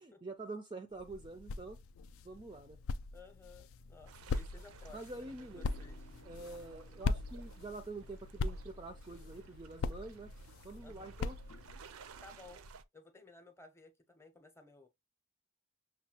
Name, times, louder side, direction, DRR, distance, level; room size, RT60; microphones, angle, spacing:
voice 1, 0.0-1.8 2.2-2.8 4.9-5.7 6.2-10.3 10.6-11.4, right 2 dB, 20° right, 0.4 m, -46 dB
sound 1, 0.9-11.9, left 4 dB, 70° left, 0.3 m, -41 dB
voice 2, 3.1-6.1 10.8-11.1 12.2-12.6 12.9-14.9, left 3 dB, 10° left, 0.7 m, -57 dB
sound 2, 4.1-12.8, right 5 dB, 80° right, 0.5 m, -57 dB
sound 3, 5.5-11.9, left 2 dB, 45° left, 0.7 m, -63 dB
6.3 x 2.2 x 2.8 m
head